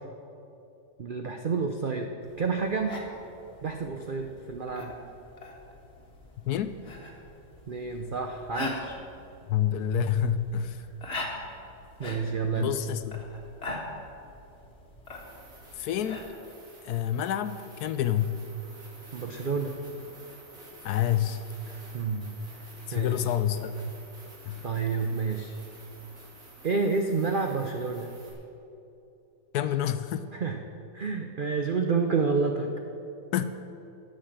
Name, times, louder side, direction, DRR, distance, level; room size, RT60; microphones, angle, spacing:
voice 1, 1.0-2.1 2.4-3.0 3.6-4.9 7.7-9.0 12.0-12.7 19.1-19.7 21.7-22.6 22.9-23.2 24.6-25.6 26.6-28.1 30.3-30.6 30.9-32.7, right 4 dB, 75° right, 4 dB, 0.4 m, -29 dB
sound 1, 2.2-16.2, left 2 dB, 40° left, 1.6 m, -42 dB
voice 2, 6.5-6.8 9.5-10.8 12.5-13.2 15.8-16.2 16.8-18.5 20.8-21.4 22.9-23.9 24.5-24.6 29.5-30.3 33.3-33.4, left 10 dB, 70° left, 11 dB, 1.0 m, -28 dB
sound 2, 15.0-28.3, right 2 dB, 50° right, 3.4 m, -51 dB
11.5 x 7.7 x 7.5 m, 2.9 s
omnidirectional pair, 1.9 m